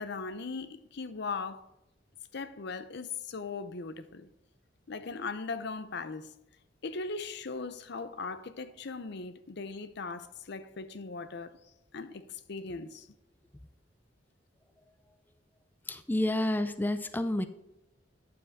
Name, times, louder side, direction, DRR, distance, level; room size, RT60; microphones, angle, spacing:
voice 1, 0.0-1.7 2.3-4.3 4.9-6.3 6.8-11.6 11.9-13.1, left 4 dB, 65° left, 0.7 m, -39 dB
voice 2, 15.9-17.4, left 1 dB, 10° left, 0.5 m, -29 dB
9.3 x 7.3 x 4.1 m
head